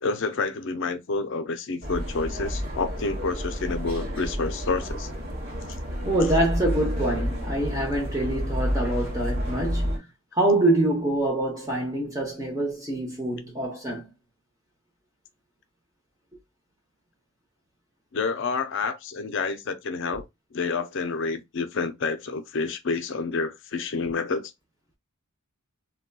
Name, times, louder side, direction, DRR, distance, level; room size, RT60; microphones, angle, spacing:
voice 1, 0.0-5.1 18.1-20.2 20.5-24.5, left 4 dB, 55° left, 0.5 m, -29 dB
sound 1, 1.8-10.0, equal, 45° right, 1.0 m, -30 dB
voice 2, 6.0-10.1 10.3-14.1, right 1 dB, 15° right, 0.7 m, -25 dB
3.8 x 2.2 x 2.2 m
head